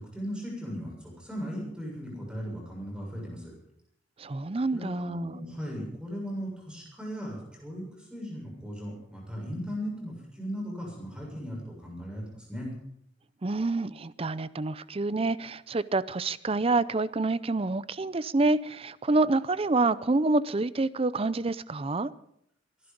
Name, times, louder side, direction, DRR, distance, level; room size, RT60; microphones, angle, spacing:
voice 1, 0.0-3.5 4.7-12.7, equal, 5° right, -2 dB, 7.1 m, -37 dB
voice 2, 4.2-5.4 13.4-22.1, right 3 dB, 30° right, 17 dB, 0.5 m, -27 dB
24.0 x 11.0 x 5.2 m, 0.74 s
head